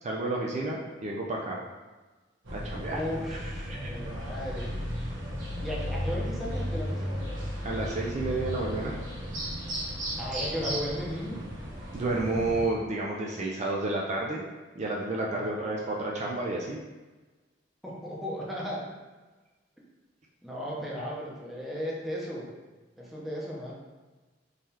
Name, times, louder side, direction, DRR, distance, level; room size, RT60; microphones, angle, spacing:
voice 1, 0.0-1.6 2.5-3.0 3.3-3.4 3.8-3.9 7.6-9.0 11.9-14.4 14.8-16.8, right 2 dB, 40° right, -2 dB, 0.4 m, -31 dB
sound 1, 2.4-12.7, equal, 90° right, 1.1 m, -35 dB
voice 2, 2.9-4.7 5.6-7.2 10.2-11.5 15.3-15.5 17.8-18.9 20.4-22.5 23.0-23.7, equal, ahead, -6 dB, 0.7 m, -35 dB
3.7 x 3.1 x 2.8 m, 1.2 s
head